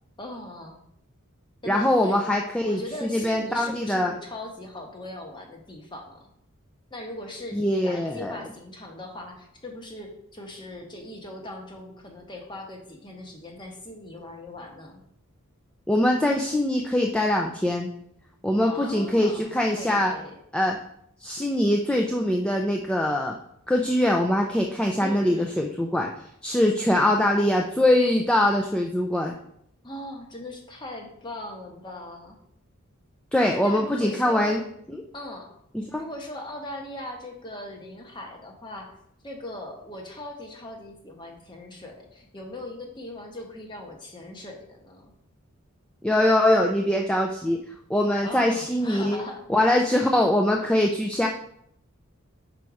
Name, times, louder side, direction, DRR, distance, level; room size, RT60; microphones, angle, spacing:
voice 1, 0.2-0.8 1.6-2.2 2.6-6.3 6.9-15.0 18.6-20.3 25.0-25.5 27.0-27.9 29.8-32.4 33.4-34.6 35.1-35.5 36.0-39.0 39.2-45.1 48.2-49.4 49.9-50.0, left 1 dB, 20° left, 2 dB, 1.0 m, -39 dB
voice 2, 1.7-4.1 7.5-8.4 15.9-17.9 18.4-20.1 20.5-20.8 21.2-23.4 23.7-26.1 26.4-29.3 33.3-34.6 35.7-36.0 46.0-49.2 49.5-51.3, left 1 dB, 5° left, 1 dB, 0.4 m, -23 dB
5.3 x 4.4 x 4.7 m, 0.71 s
head